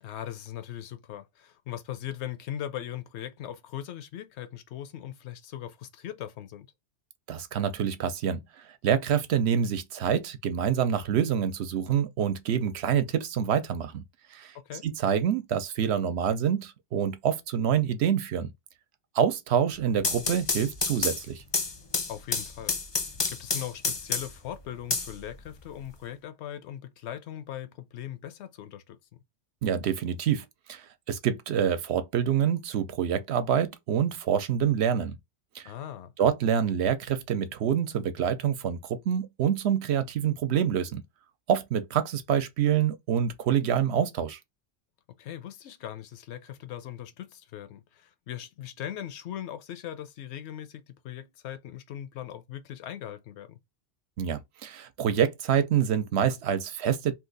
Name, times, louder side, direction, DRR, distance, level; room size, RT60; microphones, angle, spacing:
voice 1, 0.0-6.7 14.5-14.8 22.1-22.8 23.3-29.0 35.6-36.1 45.2-53.6, left 11 dB, 75° left, 0.8 m, -39 dB
voice 2, 7.3-14.0 14.3-14.5 14.8-18.5 19.1-21.4 29.6-35.2 35.5-35.7 36.2-41.0 41.5-44.4 54.2-57.1, right 8 dB, 70° right, 0.8 m, -26 dB
sound 1, 19.8-24.5 24.9-25.9, left 4 dB, 35° left, 0.4 m, -30 dB
2.8 x 2.4 x 3.8 m
omnidirectional pair, 1.2 m